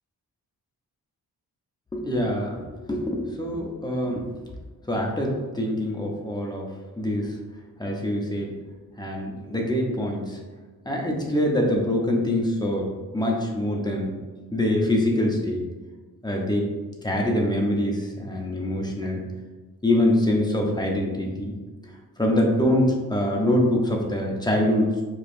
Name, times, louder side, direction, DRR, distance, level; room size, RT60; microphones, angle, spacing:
voice 1, 1.9-2.6 2.9-4.2 4.9-6.7 7.0-7.4 7.8-8.5 9.0-10.4 10.9-12.9 13.1-14.1 14.5-15.6 16.2-16.6 17.0-19.2 19.8-21.5 22.2-24.9, left 1 dB, 10° left, -1 dB, 0.7 m, -24 dB
4.9 x 2.3 x 2.6 m, 1.3 s
cardioid pair, 65°, 38 cm